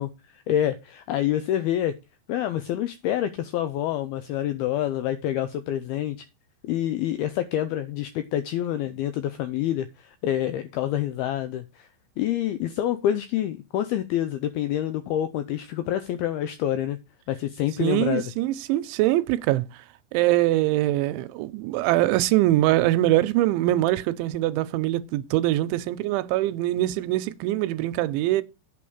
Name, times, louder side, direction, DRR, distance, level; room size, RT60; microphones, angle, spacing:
voice 1, 0.0-1.9 2.3-6.3 6.6-11.9 12.2-17.0 17.3-18.2, left 11 dB, 85° left, 2.2 m, -27 dB
voice 2, 17.8-19.7 20.1-28.4, right 15 dB, 90° right, 3.1 m, -23 dB
8.5 x 5.1 x 7.1 m
omnidirectional pair, 5.2 m